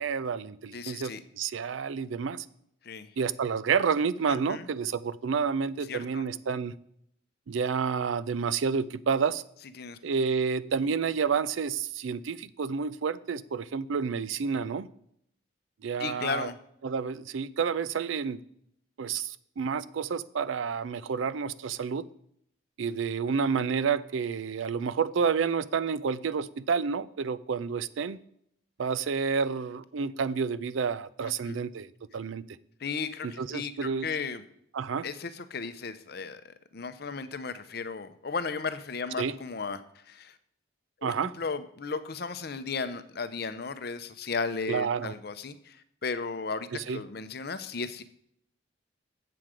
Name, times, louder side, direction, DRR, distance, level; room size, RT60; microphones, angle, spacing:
voice 1, 0.0-2.5 3.2-6.7 7.5-9.4 10.0-14.9 15.8-16.5 16.8-18.4 19.0-22.0 22.8-28.2 28.8-31.9 32.1-32.4 33.2-34.1 34.7-35.1 39.2-39.4 41.0-41.3 44.7-45.1 46.7-47.0, right 6 dB, 80° right, 16 dB, 0.4 m, -29 dB
voice 2, 0.7-1.2 2.8-3.1 4.3-4.7 5.9-6.2 9.8-10.0 16.0-16.6 31.2-31.6 32.8-34.4 35.0-40.4 41.0-48.0, left 4 dB, 50° left, 12 dB, 0.6 m, -35 dB
7.8 x 7.5 x 4.9 m, 0.70 s
head